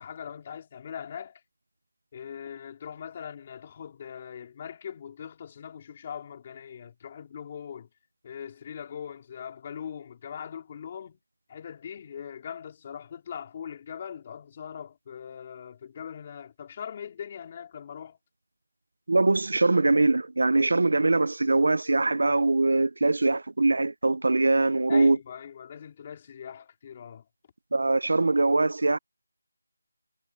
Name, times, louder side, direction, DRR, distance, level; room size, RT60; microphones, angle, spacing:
voice 1, 0.0-1.4 2.1-7.9 8.2-11.2 11.5-18.2 24.9-27.2, left 8 dB, 20° left, 4.1 m, -41 dB
voice 2, 19.1-25.2 27.7-29.0, right 2 dB, 65° right, 0.5 m, -22 dB
figure-of-eight pair, 175°, 0 cm